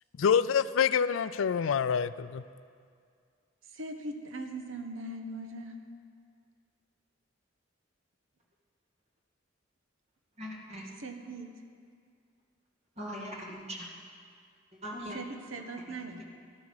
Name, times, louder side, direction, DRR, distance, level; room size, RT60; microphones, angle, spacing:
voice 1, 0.2-2.4, left 7 dB, 80° left, 15 dB, 0.4 m, -26 dB
voice 2, 3.6-5.8 11.0-11.5 15.1-16.2, right 2 dB, 85° right, 5 dB, 1.1 m, -40 dB
voice 3, 10.4-10.9 13.0-13.9 14.7-15.2, equal, 35° right, -2 dB, 2.1 m, -40 dB
13.5 x 12.0 x 4.8 m, 2.2 s
head